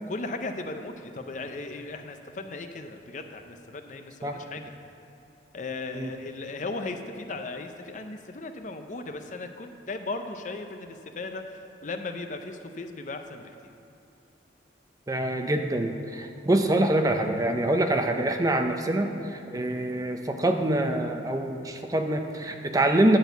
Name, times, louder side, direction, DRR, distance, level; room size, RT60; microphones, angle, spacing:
voice 1, 0.1-4.7 5.5-13.7, left 3 dB, 40° left, 6 dB, 0.5 m, -37 dB
voice 2, 15.1-23.2, right 1 dB, 20° right, 5 dB, 0.4 m, -25 dB
10.5 x 4.4 x 7.9 m, 2.9 s
head